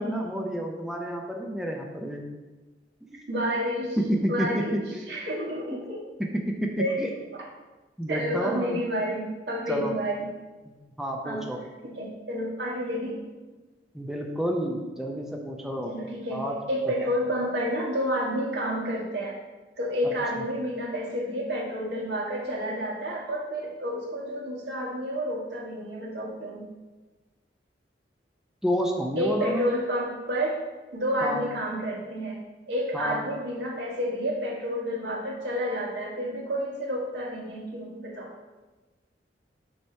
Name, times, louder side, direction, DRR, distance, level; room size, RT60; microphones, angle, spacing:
voice 1, 0.0-2.2 3.0-3.2 4.0-4.5 4.9-5.0 5.7-5.8 6.5-6.7 7.0-7.1 8.0-8.8 9.7-9.9 10.6-11.6 13.9-15.9 16.3-16.5 20.0-20.1 28.6-29.7 31.2-31.4 32.9-33.2, equal, 5° right, 0 dB, 0.5 m, -30 dB
voice 2, 3.3-4.0 4.3-6.0 6.8-7.0 7.3-7.4 8.1-10.3 11.2-11.4 11.8-13.2 15.9-16.4 16.7-19.4 19.8-26.6 29.2-30.6 30.9-32.4 32.7-38.3, equal, 70° right, -3 dB, 1.7 m, -30 dB
7.6 x 2.9 x 5.5 m, 1.2 s
head